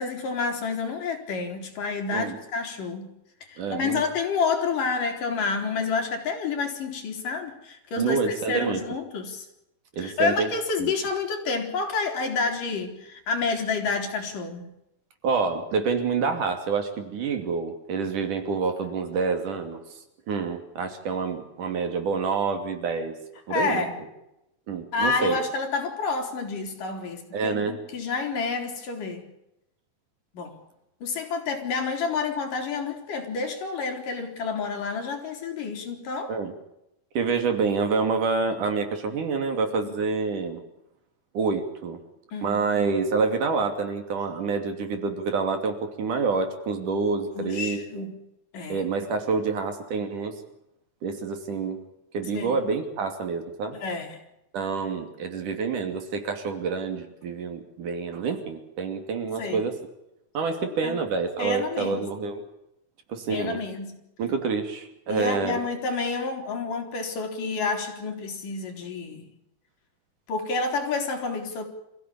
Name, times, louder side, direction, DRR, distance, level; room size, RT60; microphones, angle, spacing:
voice 1, 0.0-3.1 3.5-9.5 10.0-14.7 23.5-23.9 24.9-29.3 30.3-30.6 31.0-36.3 39.8-39.9 42.3-42.6 47.3-48.2 48.5-48.8 52.3-52.6 53.8-54.2 59.4-59.6 60.6-61.0 61.4-62.1 63.3-64.0 65.1-69.3 70.3-71.6, left 4 dB, 65° left, 4 dB, 5.1 m, -29 dB
voice 2, 3.6-4.0 8.0-8.8 9.9-10.5 10.8-10.9 15.2-23.1 23.5-23.8 24.7-25.4 27.3-27.8 36.3-36.5 37.2-40.6 41.3-42.0 42.4-48.0 48.7-50.4 51.0-51.8 52.1-53.8 54.5-59.7 60.3-62.4 63.1-63.6 64.2-65.6, right 4 dB, 60° right, 6 dB, 4.1 m, -27 dB
26.5 x 16.0 x 8.7 m, 0.87 s
omnidirectional pair, 4.1 m